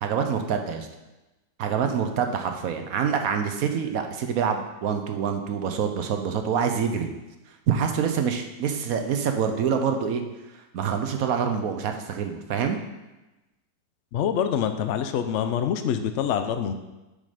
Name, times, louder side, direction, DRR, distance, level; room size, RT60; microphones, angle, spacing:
voice 1, 0.0-0.9 1.6-7.1 7.7-10.2 10.7-12.8, right 7 dB, 65° right, 6 dB, 1.0 m, -26 dB
voice 2, 14.1-16.7, left 8 dB, 85° left, 8 dB, 0.6 m, -25 dB
7.3 x 5.3 x 5.0 m, 1.0 s
omnidirectional pair, 1.9 m